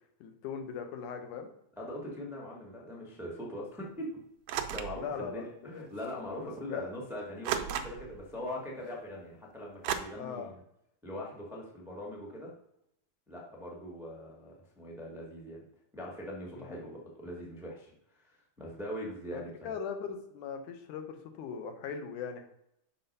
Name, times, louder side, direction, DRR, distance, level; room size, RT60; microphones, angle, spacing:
voice 1, 0.2-1.5 5.0-5.8 6.7-6.9 10.2-10.5 16.6-16.9 19.3-22.5, left 6 dB, 80° left, 6 dB, 2.4 m, -40 dB
voice 2, 1.8-4.2 4.7-10.5 11.0-12.5 13.3-15.6 15.9-19.5, left 1 dB, 5° right, -3 dB, 0.5 m, -41 dB
sound 1, 4.5-5.0 6.0-6.1 7.4-8.2 9.8-10.0, right 9 dB, 85° right, 1.3 m, -33 dB
6.1 x 5.7 x 5.4 m, 0.77 s
omnidirectional pair, 3.5 m